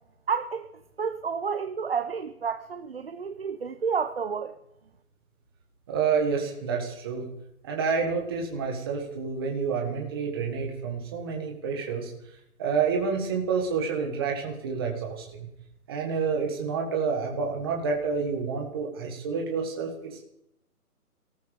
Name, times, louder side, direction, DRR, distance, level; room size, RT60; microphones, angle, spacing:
voice 1, 0.3-0.7 1.0-4.5, right 6 dB, 40° right, 9 dB, 0.7 m, -30 dB
voice 2, 5.9-7.2 7.6-12.1 12.6-15.5 15.9-20.2, right 5 dB, 15° right, 1 dB, 1.5 m, -29 dB
18.5 x 14.0 x 5.1 m, 0.78 s
hypercardioid pair, 170°, 46 cm